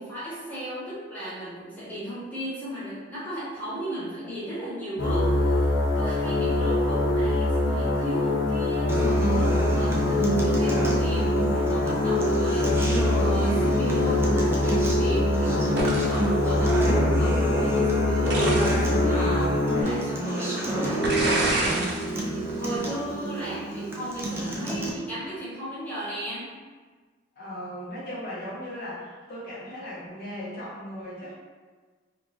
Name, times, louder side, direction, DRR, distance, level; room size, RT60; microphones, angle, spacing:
voice 1, 0.0-26.5, equal, 10° left, -12 dB, 1.2 m, -35 dB
sound 1, 5.0-19.8, left 2 dB, 75° left, 0.6 m, -24 dB
Acoustic guitar, 8.9-24.9, right 1 dB, 15° right, 0.4 m, -29 dB
sound 2, 15.8-16.3 18.3-18.9 19.8-19.9 21.0-22.1 22.5-22.8, right 2 dB, 60° right, 0.7 m, -27 dB
voice 2, 27.3-31.3, equal, 55° left, -8 dB, 1.0 m, -38 dB
3.4 x 2.5 x 3.1 m, 1.4 s
head